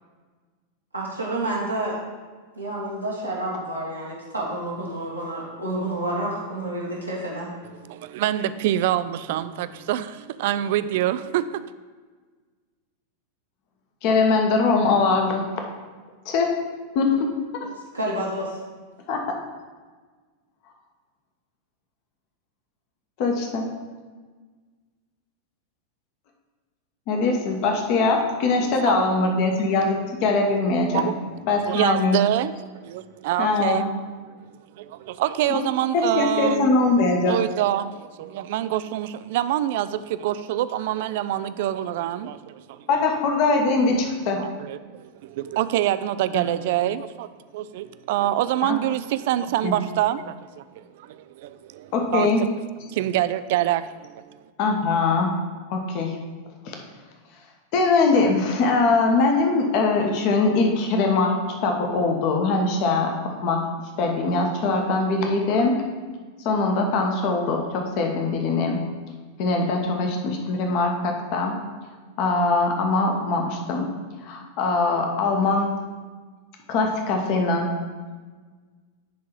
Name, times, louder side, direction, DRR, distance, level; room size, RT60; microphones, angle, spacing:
voice 1, 0.9-2.0 2.5-7.5 17.9-18.6, right 1 dB, 90° right, -6 dB, 1.4 m, -29 dB
voice 2, 7.9-11.7 28.6-29.3 30.9-31.3 31.7-33.9 34.2-36.9 37.3-42.9 44.4-47.3 47.5-52.3 52.9-54.4, right 13 dB, 50° right, 14 dB, 0.3 m, -26 dB
voice 3, 14.0-15.5 16.2-16.6 16.9-17.3 17.5-17.6 19.1-19.2 23.2-23.6 27.1-31.1 31.5-32.2 33.4-33.8 35.5-35.6 35.9-37.3 42.9-44.4 46.3-46.5 48.6-48.8 49.6-49.7 51.9-52.4 54.6-55.3 55.7-56.2 56.6-56.8 57.7-63.1 63.4-63.7 64.0-65.8 66.4-68.8 69.4-71.5 72.2-73.9 74.2-75.7 76.7-77.7, left 3 dB, 45° left, 2 dB, 1.2 m, -22 dB
10.5 x 3.7 x 4.6 m, 1.4 s
figure-of-eight pair, 90°, 0 cm